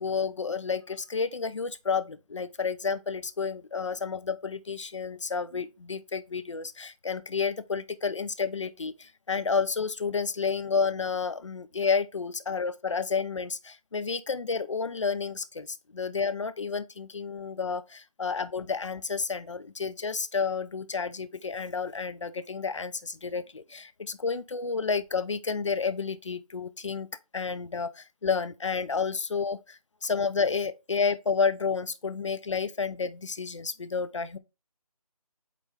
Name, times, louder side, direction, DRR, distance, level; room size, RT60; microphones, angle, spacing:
voice 1, 0.0-27.1 27.3-34.4, left 5 dB, 50° left, 0.6 m, -30 dB
8.3 x 3.3 x 3.6 m
figure-of-eight pair, 165°, 19 cm